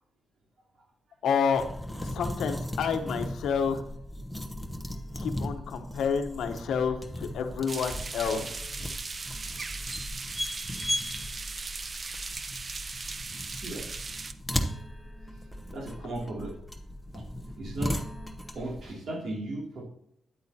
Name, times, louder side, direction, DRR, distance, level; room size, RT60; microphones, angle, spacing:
voice 1, 1.2-1.7 2.0-3.8 5.2-8.6, left 6 dB, 85° left, 8 dB, 0.9 m, -29 dB
sound 1, 1.5-18.9, equal, ahead, 0.9 m, -37 dB
sound 2, 7.7-14.3, right 4 dB, 35° right, 0.6 m, -38 dB
voice 2, 15.7-16.6 17.1-17.2 17.5-18.0 18.5-19.8, right 2 dB, 65° right, -1 dB, 2.7 m, -36 dB
9.4 x 8.4 x 2.8 m, 0.74 s
cardioid pair, 100°, 0 cm